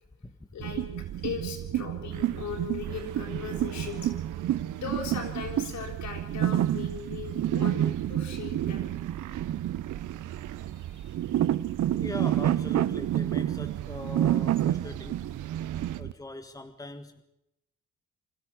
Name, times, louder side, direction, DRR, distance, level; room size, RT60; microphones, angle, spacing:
voice 1, 0.5-0.9 1.2-4.1 4.7-7.8 8.1-8.9 10.8-11.2, left 6 dB, 70° left, 1 dB, 6.9 m, -38 dB
sound 1, 0.6-16.1, right 12 dB, 60° right, 0.7 m, -29 dB
sound 2, 2.1-16.0, right 12 dB, 85° right, 1.1 m, -44 dB
voice 2, 11.9-15.2 16.0-17.2, left 2 dB, 10° left, 7 dB, 1.6 m, -41 dB
26.0 x 13.5 x 7.9 m, 0.85 s
cardioid pair, 90°, 30 cm